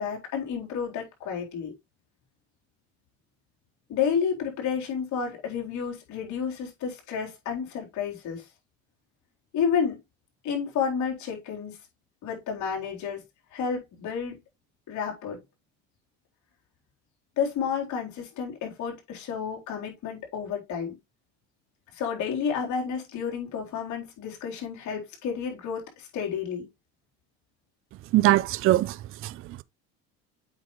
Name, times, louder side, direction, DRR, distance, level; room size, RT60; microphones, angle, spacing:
voice 1, 0.0-1.7 3.9-8.5 9.5-10.0 10.4-11.8 12.2-13.2 13.5-14.4 14.9-15.4 17.4-21.0 21.9-26.7, left 7 dB, 65° left, 4.0 m, -30 dB
voice 2, 28.1-29.6, right 16 dB, 45° right, 0.5 m, -23 dB
8.0 x 5.3 x 3.2 m
supercardioid pair, 100°, 32 cm